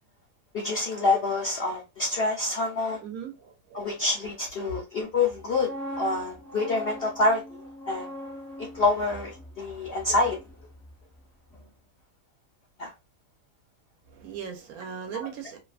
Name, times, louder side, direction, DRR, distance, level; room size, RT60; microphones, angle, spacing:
voice 1, 0.5-3.0 3.7-5.7 6.0-7.4 7.9-8.1 8.7-10.4 12.8-12.9, left 3 dB, 70° left, 0.5 m, -26 dB
voice 2, 3.0-3.9 14.1-15.6, right 8 dB, 75° right, 1.1 m, -38 dB
sound 1, 5.3-11.2 11.5-11.8, equal, ahead, 0.5 m, -41 dB
2.7 x 2.3 x 2.4 m
omnidirectional pair, 1.6 m